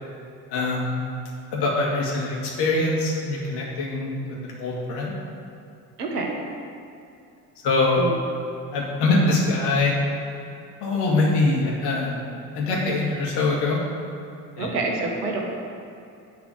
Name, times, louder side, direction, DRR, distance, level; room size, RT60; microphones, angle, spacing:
voice 1, 0.5-1.0 1.5-5.1 7.6-8.0 8.7-9.9 10.8-13.8 14.6-14.7, left 2 dB, 55° left, -3 dB, 2.5 m, -23 dB
voice 2, 6.0-6.3 7.9-8.1 14.6-15.4, right 3 dB, 75° right, 1 dB, 1.5 m, -27 dB
10.5 x 4.8 x 8.0 m, 2.6 s
figure-of-eight pair, 55°, 47 cm